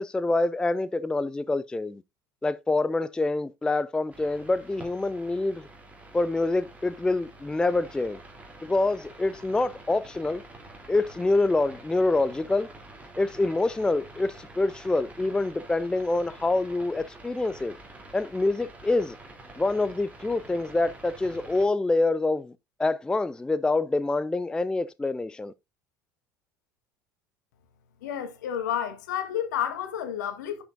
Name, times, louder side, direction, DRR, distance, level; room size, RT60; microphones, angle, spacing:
voice 1, 0.0-2.0 2.4-5.7 6.1-8.2 8.6-10.4 10.9-12.7 13.2-17.7 18.1-19.2 19.6-22.5 22.8-25.5, left 2 dB, 10° left, 0.4 m, -26 dB
sound 1, 4.1-21.7, right 2 dB, 15° right, 2.9 m, -48 dB
voice 2, 28.0-30.6, left 9 dB, 65° left, 1.3 m, -30 dB
11.0 x 6.0 x 2.5 m
figure-of-eight pair, 65°, 10 cm